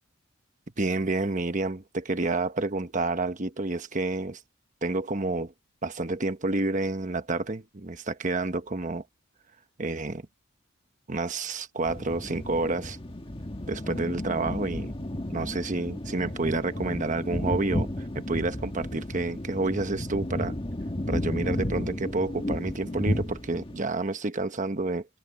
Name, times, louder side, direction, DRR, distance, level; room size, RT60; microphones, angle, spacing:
voice 1, 0.8-4.4 4.8-5.5 5.8-9.0 9.8-10.2 11.1-13.0 13.7-14.9 15.3-17.9 18.1-20.6 21.1-25.1, right 2 dB, 35° right, 1.1 m, -29 dB
sound 1, 11.8-23.8, left 1 dB, 25° left, 1.5 m, -33 dB
head